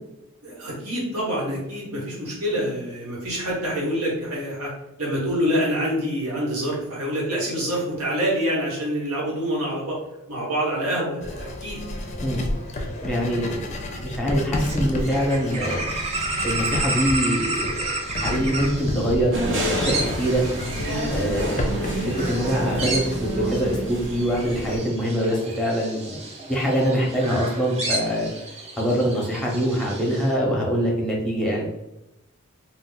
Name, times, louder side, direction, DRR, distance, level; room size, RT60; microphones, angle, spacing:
voice 1, 0.4-4.7 5.0-10.0 10.3-11.8, equal, 85° right, -4 dB, 1.2 m, -26 dB
Writing, 11.2-23.2, left 1 dB, 35° left, 0.5 m, -32 dB
voice 2, 13.0-13.6 13.9-15.8 16.4-20.4 21.1-21.8 22.2-26.2 26.5-28.3 28.8-31.6, equal, 5° left, -2 dB, 0.8 m, -24 dB
sound 1, 14.6-30.3, right 2 dB, 30° right, 0.5 m, -32 dB
sound 2, 19.3-24.8, right 1 dB, 60° right, 0.8 m, -28 dB
2.5 x 2.3 x 3.8 m, 0.89 s
head